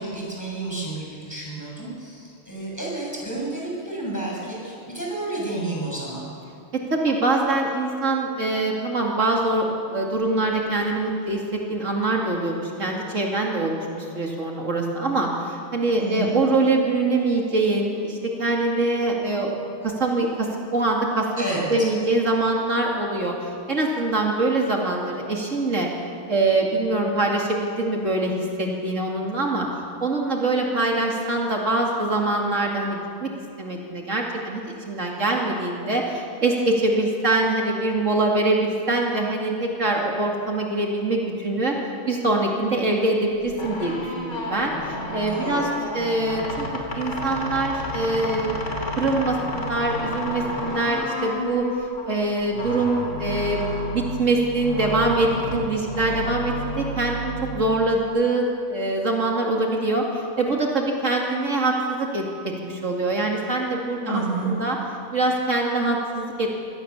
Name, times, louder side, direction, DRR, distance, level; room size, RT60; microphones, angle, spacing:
voice 1, 0.0-6.3 15.9-16.4 21.4-21.7 44.9-45.0 45.3-45.7 64.0-64.6, right 2 dB, 15° left, -4 dB, 6.8 m, -30 dB
voice 2, 6.9-19.5 19.8-21.3 21.7-25.9 26.3-29.7 30.0-33.3 33.6-41.7 42.1-45.7 45.9-48.5 49.0-53.6 53.9-64.8 65.1-66.6, right 2 dB, 70° right, 0 dB, 2.7 m, -24 dB
sound 1, 43.5-58.0, left 1 dB, 65° left, 3.3 m, -31 dB
24.5 x 17.5 x 7.1 m, 2.5 s
omnidirectional pair, 1.4 m